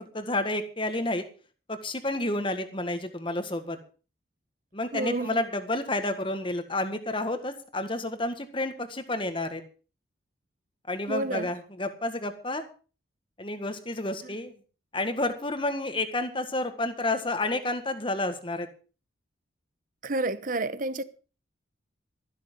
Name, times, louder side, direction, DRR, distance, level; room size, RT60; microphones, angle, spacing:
voice 1, 0.1-1.2 1.7-3.8 4.7-9.6 10.9-12.6 13.4-14.5 14.9-18.7, left 2 dB, 25° left, 1.7 m, -30 dB
voice 2, 4.9-5.4 11.1-11.5 14.2-14.4 20.0-21.0, right 2 dB, 40° right, 0.9 m, -30 dB
13.5 x 12.0 x 5.4 m
head